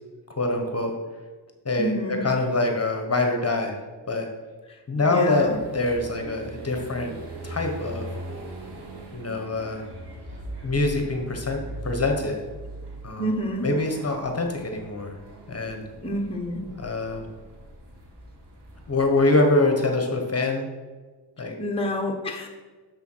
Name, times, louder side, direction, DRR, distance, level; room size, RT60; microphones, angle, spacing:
voice 1, 0.4-0.9 1.6-3.8 4.1-4.3 4.9-7.2 7.4-8.1 9.1-9.8 10.6-12.4 13.0-13.3 13.6-15.2 15.5-15.8 16.8-17.2 18.9-20.7 21.4-21.6, left 2 dB, 35° left, 3 dB, 1.2 m, -24 dB
voice 2, 1.8-2.2 5.0-5.6 13.2-13.6 16.0-16.6 21.4-22.5, equal, 15° left, 1 dB, 1.1 m, -28 dB
sound 1, 5.4-19.1, right 1 dB, 70° right, 2.2 m, -40 dB
6.9 x 6.7 x 6.2 m, 1.3 s
wide cardioid pair, 125°, 42 cm